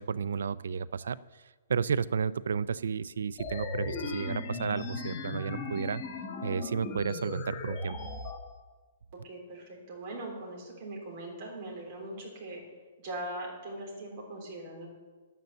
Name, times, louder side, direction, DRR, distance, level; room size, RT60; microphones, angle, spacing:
voice 1, 0.0-1.4 1.7-6.0 6.4-8.0, right 6 dB, 80° right, 19 dB, 0.4 m, -32 dB
sound 1, 3.4-8.4, left 3 dB, 15° left, 1.1 m, -37 dB
voice 2, 9.2-12.6 13.0-14.9, right 1 dB, 30° right, -2 dB, 3.5 m, -41 dB
10.5 x 9.3 x 6.8 m, 1.3 s
hypercardioid pair, 175°, 0 cm